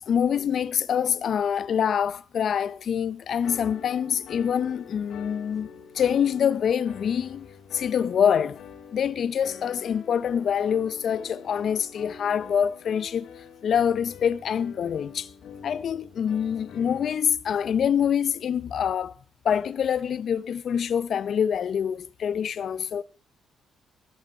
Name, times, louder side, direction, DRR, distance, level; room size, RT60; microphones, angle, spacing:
voice 1, 0.1-5.7 5.9-7.5 7.7-8.6 8.9-13.3 13.6-15.3 15.6-19.1 19.4-23.0, left 8 dB, 60° left, 0.7 m, -25 dB
sound 1, 3.4-17.1, left 6 dB, 75° left, 2.6 m, -45 dB
24.0 x 8.0 x 4.4 m
cardioid pair, 90°, 0 cm